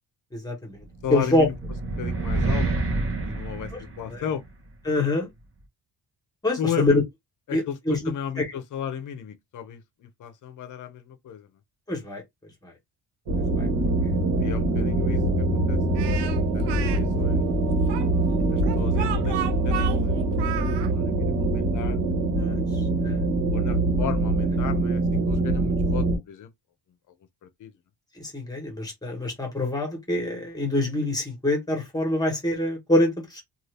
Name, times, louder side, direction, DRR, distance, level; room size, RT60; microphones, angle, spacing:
voice 1, 0.3-1.5 4.0-4.2 4.8-5.3 6.4-7.0 7.5-8.4 11.9-12.2 12.6-12.7 13.6-13.7 14.0-14.1 22.4-23.2 28.1-33.4, left 2 dB, 10° left, 1.2 m, -26 dB
voice 2, 1.0-1.6 2.0-2.7 3.2-4.4 6.6-7.0 7.5-11.5 14.4-15.8 16.1-17.5 18.5-20.1 20.4-22.0 23.5-26.5 27.4-27.7, left 8 dB, 50° left, 0.6 m, -35 dB
sound 1, 1.0-4.4, right 2 dB, 35° right, 0.8 m, -28 dB
sound 2, 13.3-26.2, right 2 dB, 70° right, 1.3 m, -24 dB
Speech, 15.9-17.0 17.9-20.9, right 11 dB, 90° right, 0.6 m, -33 dB
2.6 x 2.5 x 3.3 m
cardioid pair, 170°, 40 cm